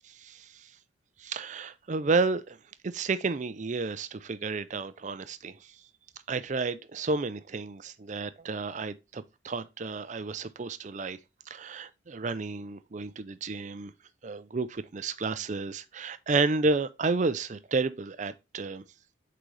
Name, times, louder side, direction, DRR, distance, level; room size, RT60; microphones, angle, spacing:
voice 1, 0.2-0.7 1.2-2.6 2.8-5.7 6.3-11.2 11.5-13.9 14.2-18.8, right 3 dB, 40° right, 0.4 m, -31 dB
8.3 x 3.9 x 3.2 m
head